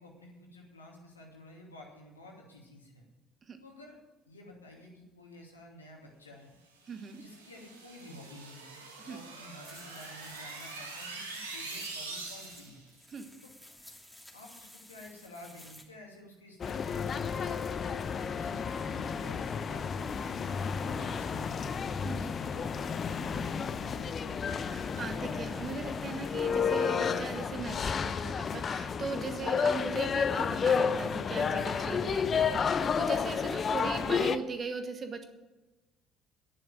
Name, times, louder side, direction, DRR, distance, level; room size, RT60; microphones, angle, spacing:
voice 1, 0.0-3.0 3.6-4.0 4.3-6.5 7.1-12.8 13.4-13.5 14.3-18.0 18.3-21.7 22.2-24.3 24.9-25.1, left 1 dB, 85° left, -1 dB, 2.6 m, -51 dB
voice 2, 6.9-7.2 9.0-9.2 13.1-13.2 22.0-22.3 24.6-35.3, right 4 dB, 35° right, 8 dB, 1.6 m, -39 dB
sound 1, 6.9-12.8, right 3 dB, 80° right, 1.9 m, -44 dB
sound 2, 9.6-15.8, left 1 dB, 5° left, 2.7 m, -53 dB
sound 3, 16.6-34.4, left 6 dB, 35° left, 0.7 m, -31 dB
11.0 x 10.5 x 7.4 m, 1.1 s
figure-of-eight pair, 55°, 0 cm